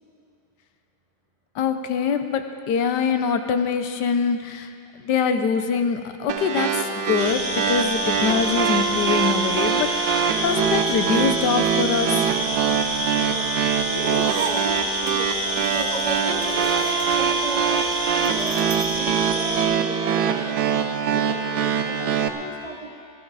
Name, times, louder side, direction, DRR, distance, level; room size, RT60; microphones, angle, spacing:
voice 1, 1.5-4.7 5.0-12.3, left 6 dB, 75° left, 8 dB, 1.4 m, -24 dB
sound 1, 6.3-22.3, right 7 dB, 85° right, 1.4 m, -24 dB
sound 2, 7.2-19.6, equal, 10° right, 2.6 m, -28 dB
voice 2, 13.1-16.8 17.1-17.9 18.1-22.9, right 1 dB, 30° right, -1 dB, 0.7 m, -36 dB
sound 3, 14.0-19.0, right 8 dB, 70° right, 1.2 m, -36 dB
18.0 x 13.5 x 4.1 m, 2.4 s
omnidirectional pair, 1.9 m